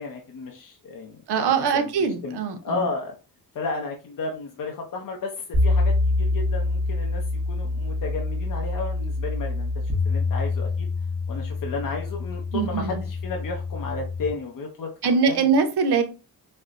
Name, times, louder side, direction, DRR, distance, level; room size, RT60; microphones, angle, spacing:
voice 1, 0.0-2.4 2.6-3.1 3.5-9.7 10.0-10.9 11.3-15.5, left 3 dB, 55° left, 0.6 m, -33 dB
voice 2, 1.3-2.9 12.5-13.0 15.0-16.0, right 5 dB, 80° right, 0.7 m, -22 dB
sound 1, 5.5-14.3, left 3 dB, 50° right, 0.9 m, -26 dB
4.2 x 2.0 x 2.5 m
cardioid pair, 100°, 39 cm